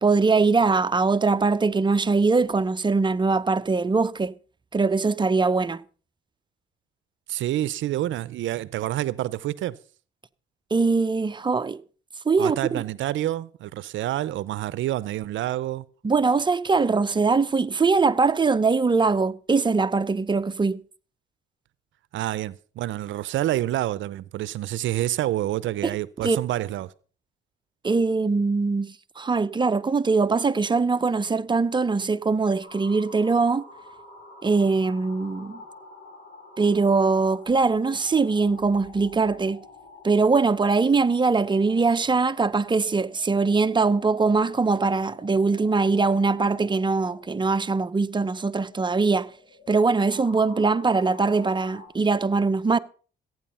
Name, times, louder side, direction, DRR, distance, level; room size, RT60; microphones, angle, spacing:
voice 1, 0.0-4.3 4.7-5.8 10.7-11.8 12.3-12.6 16.0-20.8 25.8-25.9 26.2-26.4 27.8-33.6 34.4-35.6 36.6-39.6 40.0-49.3 49.7-52.8, right 4 dB, 25° right, 0.7 m, -22 dB
voice 2, 7.3-9.8 12.4-15.9 22.1-26.9, right 14 dB, 75° right, 0.6 m, -28 dB
sound 1, 32.6-51.9, left 3 dB, 65° left, 6.9 m, -48 dB
14.5 x 9.4 x 5.5 m
cardioid pair, 90°, 20 cm